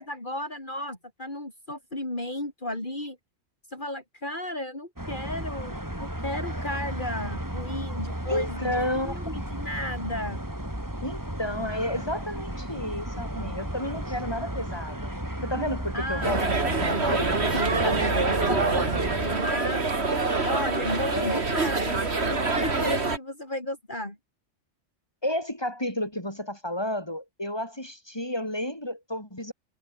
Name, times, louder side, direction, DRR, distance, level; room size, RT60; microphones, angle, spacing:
voice 1, 0.0-3.2 3.7-10.4 15.9-19.9 20.4-24.2, left 1 dB, 40° left, 5.3 m, -34 dB
sound 1, 5.0-19.4, right 1 dB, 15° right, 5.2 m, -34 dB
voice 2, 8.3-9.1 9.5-9.7 11.0-15.1 15.4-18.0 18.5-18.6 19.1-19.3 21.1-21.4 25.2-29.5, left 1 dB, 20° left, 7.4 m, -32 dB
sound 2, 16.2-23.2, right 3 dB, 60° right, 2.9 m, -25 dB
omnidirectional pair, 1.2 m